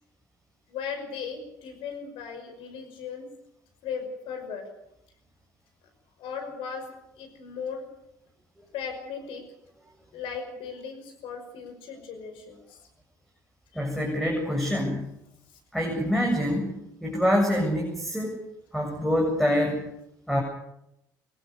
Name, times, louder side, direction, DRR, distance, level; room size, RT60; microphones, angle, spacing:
voice 1, 0.7-3.3 3.8-4.7 6.2-7.8 8.7-9.4 10.1-12.8 13.7-13.9, left 6 dB, 60° left, 6 dB, 5.7 m, -37 dB
voice 2, 13.7-15.1 15.7-16.7 17.0-18.4 18.7-19.9 20.3-20.4, equal, ahead, 1 dB, 7.7 m, -25 dB
25.0 x 23.0 x 6.9 m, 0.81 s
figure-of-eight pair, 55°, 10 cm